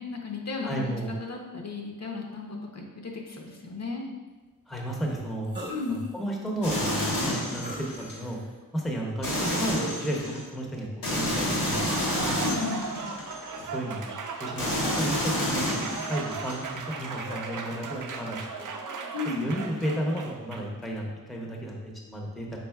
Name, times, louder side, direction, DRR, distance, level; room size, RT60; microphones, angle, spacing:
voice 1, 0.0-0.9 1.2-4.0 5.7-6.0 12.4-12.9 19.1-19.5, left 4 dB, 50° left, 0 dB, 0.7 m, -34 dB
voice 2, 0.6-1.1 4.7-5.5 5.9-8.4 8.7-12.4 13.6-18.7 19.4-22.6, right 1 dB, ahead, -1 dB, 0.6 m, -33 dB
sound 1, 5.5-6.1 6.7-6.8 7.6-8.4 9.5-10.1, right 2 dB, 30° right, 0.9 m, -39 dB
sound 2, 6.6-8.2 9.2-10.4 11.0-13.6 14.6-16.6, left 1 dB, 80° left, 1.3 m, -29 dB
Applause, 11.6-20.8, right 4 dB, 65° right, 0.5 m, -37 dB
5.4 x 3.9 x 2.3 m, 1.2 s
wide cardioid pair, 100°, 34 cm